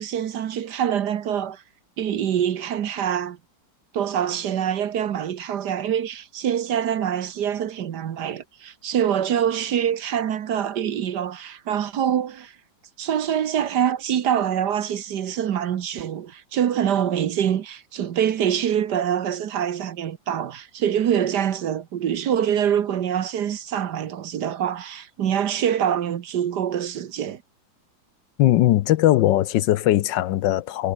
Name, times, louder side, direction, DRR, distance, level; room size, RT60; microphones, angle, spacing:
voice 1, 0.0-1.6 2.0-3.4 3.9-12.5 13.0-27.4, right 9 dB, 60° right, 1.5 m, -25 dB
voice 2, 28.4-30.9, left 14 dB, 75° left, 1.3 m, -19 dB
omnidirectional pair, 2.1 m